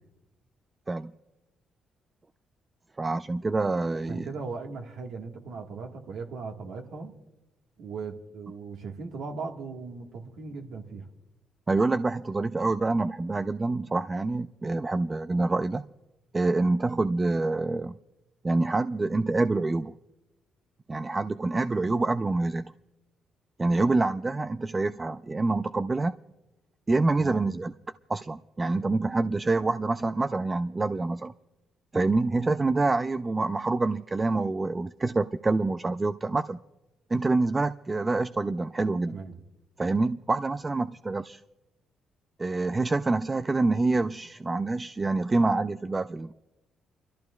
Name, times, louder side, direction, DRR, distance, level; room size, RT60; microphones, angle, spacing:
voice 1, 3.0-4.3 11.7-15.8 16.3-18.0 18.4-19.9 20.9-22.7 23.6-26.1 26.9-27.7 28.1-31.3 31.9-36.6 37.1-39.2 39.8-41.4 42.4-46.3, right 3 dB, 25° right, 11 dB, 0.4 m, -26 dB
voice 2, 4.1-7.1 7.8-11.0 27.2-27.5 39.1-39.4, right 4 dB, 75° right, 2 dB, 1.6 m, -38 dB
29.5 x 13.5 x 2.3 m, 1.0 s
cardioid pair, 90°, 0 cm